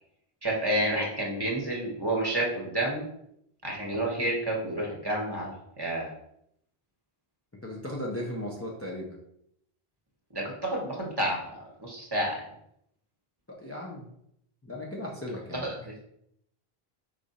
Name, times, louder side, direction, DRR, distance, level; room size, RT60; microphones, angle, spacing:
voice 1, 0.4-3.0 3.6-6.1 10.3-10.4 10.7-11.4 11.8-12.4 15.6-15.7, right 1 dB, 25° right, -2 dB, 1.0 m, -29 dB
voice 2, 7.6-9.2 13.5-14.1 14.6-15.7, left 1 dB, 20° left, -3 dB, 0.4 m, -36 dB
4.7 x 2.5 x 4.0 m, 0.74 s
omnidirectional pair, 1.0 m